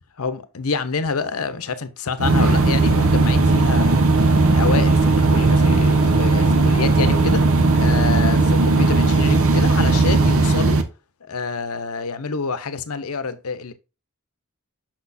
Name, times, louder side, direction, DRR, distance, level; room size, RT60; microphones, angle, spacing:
voice 1, 0.2-7.5 7.7-10.8 11.2-13.7, left 4 dB, 75° left, 0.8 m, -27 dB
sound 1, 2.2-10.8, right 3 dB, 65° right, 0.9 m, -17 dB
6.2 x 6.2 x 2.6 m
head